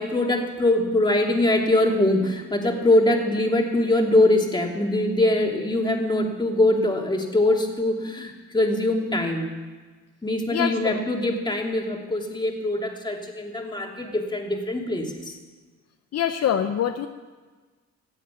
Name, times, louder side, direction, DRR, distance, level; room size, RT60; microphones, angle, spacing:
voice 1, 0.0-9.5 10.2-15.3, left 1 dB, 15° left, 1 dB, 2.7 m, -23 dB
voice 2, 10.5-11.0 16.1-17.1, left 9 dB, 55° left, 7 dB, 0.8 m, -24 dB
15.0 x 8.5 x 9.7 m, 1.4 s
cardioid pair, 90°, 30 cm